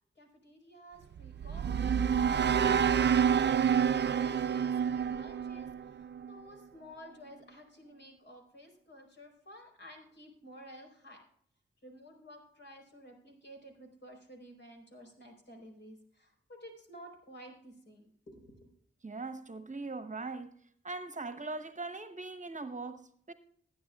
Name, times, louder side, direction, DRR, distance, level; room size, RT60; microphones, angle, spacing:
voice 1, 0.2-11.2 11.8-18.7, equal, 60° left, 4.3 m, -53 dB
sound 1, 1.1-6.4, right 7 dB, 60° right, 0.4 m, -28 dB
voice 2, 19.0-20.6 20.8-23.3, right 3 dB, 40° right, 0.9 m, -40 dB
21.0 x 9.5 x 2.4 m
cardioid pair, 70°, 20 cm